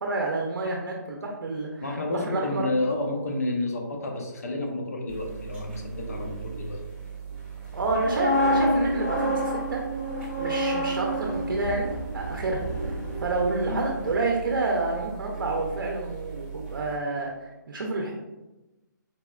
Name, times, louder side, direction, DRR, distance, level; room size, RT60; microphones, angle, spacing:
voice 1, 0.0-2.7 7.7-9.8 10.4-12.9 13.2-18.2, right 2 dB, 90° right, 0 dB, 0.5 m, -29 dB
voice 2, 1.8-6.8 13.7-13.9, left 2 dB, 50° left, 1 dB, 0.6 m, -30 dB
sound 1, 5.1-17.0, right 6 dB, 35° right, 0.8 m, -38 dB
sound 2, 7.8-13.7 14.0-14.3, equal, 5° left, 0.6 m, -28 dB
4.1 x 2.1 x 2.3 m, 1.0 s
hypercardioid pair, 175°, 11 cm